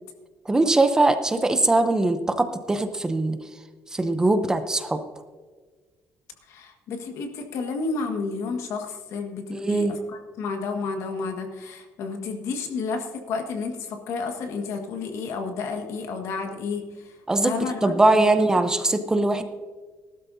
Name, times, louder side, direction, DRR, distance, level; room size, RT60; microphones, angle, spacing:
voice 1, 0.5-3.4 3.9-5.0 9.5-9.9 17.3-19.4, right 2 dB, 10° right, 8 dB, 0.7 m, -21 dB
voice 2, 6.5-16.9 17.4-18.2, left 4 dB, 70° left, 4 dB, 1.7 m, -31 dB
18.5 x 12.5 x 2.7 m, 1.4 s
cardioid pair, 155°, 5 cm